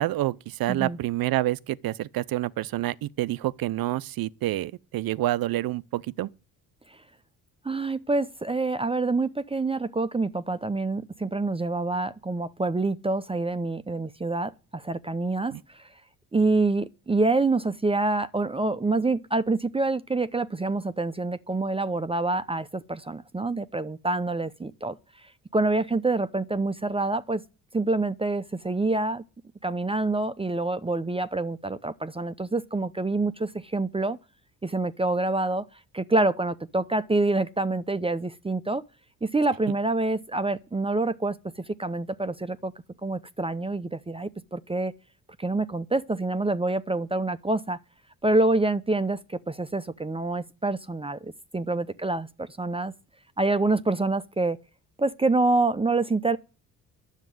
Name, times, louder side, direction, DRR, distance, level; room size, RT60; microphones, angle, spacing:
voice 1, 0.0-6.3 15.5-15.6, right 15 dB, 65° right, 0.7 m, -28 dB
voice 2, 7.6-15.9 16.3-27.4 27.7-29.2 29.6-34.2 34.6-35.7 35.9-38.8 39.2-42.7 43.0-44.9 45.4-47.8 48.2-52.9 53.4-54.6 55.0-56.4, right 2 dB, 15° right, 0.7 m, -26 dB
10.5 x 7.3 x 9.3 m
supercardioid pair, 65°, 39 cm